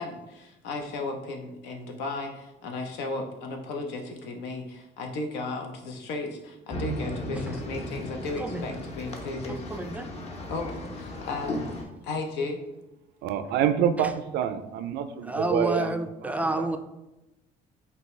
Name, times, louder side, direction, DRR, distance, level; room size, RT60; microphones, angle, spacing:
voice 1, 0.0-9.6 10.5-11.7 12.0-12.6, left 3 dB, 90° left, 3 dB, 0.7 m, -35 dB
sound 1, 6.7-11.8, left 1 dB, 40° left, 0.8 m, -35 dB
voice 2, 8.4-8.7 9.5-10.0 14.0-14.1 15.2-16.8, right 2 dB, 10° right, 6 dB, 0.3 m, -29 dB
voice 3, 13.2-15.9 16.6-16.7, right 8 dB, 80° right, 11 dB, 0.4 m, -26 dB
5.4 x 2.3 x 3.1 m, 0.97 s
cardioid pair, 110°, 17 cm